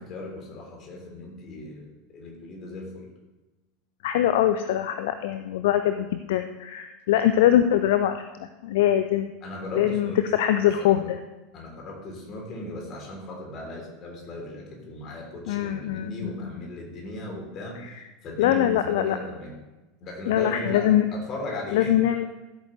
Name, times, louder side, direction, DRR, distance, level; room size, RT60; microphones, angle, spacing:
voice 1, 0.0-3.1 9.4-10.2 10.8-11.1 11.5-17.8 18.2-19.6 20.0-22.0, left 1 dB, 40° left, 0 dB, 3.6 m, -37 dB
voice 2, 4.0-9.3 9.8-11.2 15.5-16.3 18.4-19.2 20.3-21.0 21.7-22.3, left 11 dB, 60° left, 9 dB, 0.5 m, -23 dB
14.5 x 8.2 x 3.3 m, 1.1 s
figure-of-eight pair, 80°, 0 cm